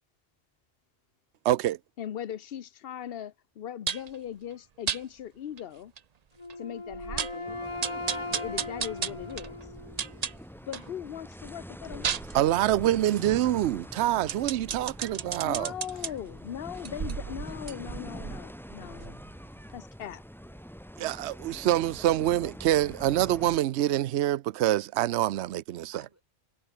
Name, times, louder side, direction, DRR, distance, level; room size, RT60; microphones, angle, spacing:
voice 1, 1.4-1.8 12.3-15.7 21.0-26.0, right 13 dB, 80° right, 0.9 m, -26 dB
voice 2, 2.0-5.9 6.6-7.6 8.3-9.6 10.6-12.2 15.4-19.2 19.7-20.2, left 10 dB, 60° left, 0.9 m, -39 dB
sound 1, 3.9-4.2 4.9-5.0 5.6-5.7 6.0-6.1 6.5-6.6 6.9-7.4 7.8-10.9 11.3-16.1 16.7-19.4 19.7-19.8, right 7 dB, 45° right, 0.6 m, -35 dB
Wind instrument woodwind instrument, 6.4-10.3, left 2 dB, 25° left, 2.0 m, -38 dB
sound 2, 7.5-23.6, equal, ahead, 2.5 m, -45 dB
voice 3, 13.8-14.2 17.2-17.6 25.9-26.2, right 1 dB, 15° right, 4.3 m, -59 dB
omnidirectional pair, 1.1 m